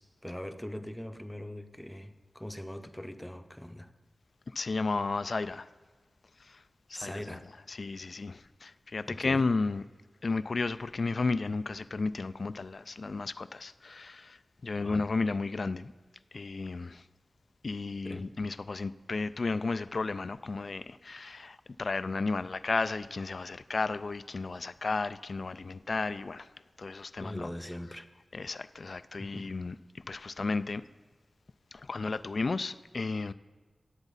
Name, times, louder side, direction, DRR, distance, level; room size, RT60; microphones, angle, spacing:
voice 1, 0.0-3.9 6.9-7.5 9.1-9.5 14.8-15.1 18.0-18.3 27.2-28.1 29.2-29.5, left 1 dB, 5° left, 0.7 m, -41 dB
voice 2, 4.5-5.7 6.4-6.6 6.9-7.4 7.7-9.8 10.2-15.9 16.3-17.0 17.6-26.5 26.8-27.5 28.3-30.8 31.7-33.3, left 3 dB, 55° left, 0.3 m, -33 dB
18.5 x 8.2 x 4.1 m
wide cardioid pair, 90°, 0 cm